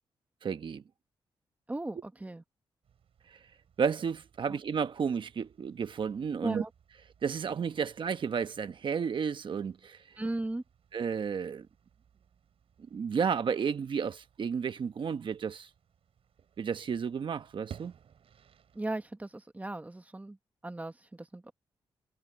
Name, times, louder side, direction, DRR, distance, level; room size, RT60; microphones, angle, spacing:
voice 1, 0.4-0.8 3.8-6.6 7.2-10.0 10.9-11.7 12.9-15.7 16.6-17.9, right 6 dB, 60° right, 1.1 m, -32 dB
voice 2, 1.7-2.4 4.5-4.6 6.4-6.7 10.2-10.6 18.7-20.4 20.6-21.5, right 2 dB, 15° right, 1.2 m, -37 dB
sound 1, 2.8-18.8, right 8 dB, 80° right, 6.5 m, -58 dB
wide cardioid pair, 110°, 10 cm